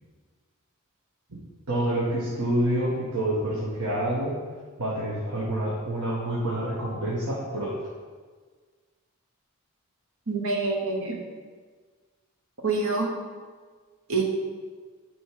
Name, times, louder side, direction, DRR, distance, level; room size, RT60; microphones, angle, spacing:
voice 1, 1.7-4.4 4.8-7.8, right 1 dB, 90° right, -7 dB, 1.4 m, -27 dB
voice 2, 10.3-11.2 12.6-13.1 14.1-14.2, right 3 dB, 70° right, 1 dB, 1.1 m, -26 dB
8.8 x 3.2 x 4.8 m, 1.5 s
head